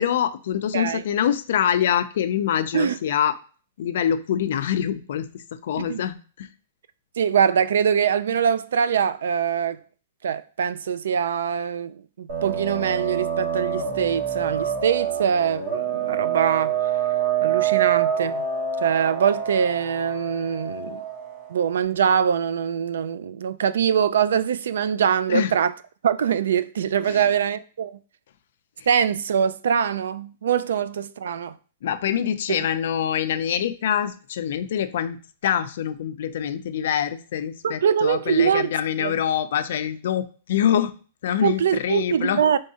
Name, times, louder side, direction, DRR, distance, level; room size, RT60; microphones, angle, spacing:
voice 1, 0.0-3.3 3.8-6.5 25.3-25.5 27.1-27.2 31.8-40.9 41.2-42.4, left 9 dB, 60° left, 0.4 m, -25 dB
voice 2, 7.2-9.8 10.2-16.7 17.4-18.4 18.8-21.0 21.5-25.7 26.0-28.0 28.9-31.5 32.6-32.7 37.6-38.7 39.0-39.2 41.4-42.6, right 8 dB, 80° right, 0.3 m, -23 dB
sound 1, 12.3-21.5, right 9 dB, 45° right, 1.0 m, -26 dB
4.6 x 3.1 x 2.8 m
hypercardioid pair, 170°, 0 cm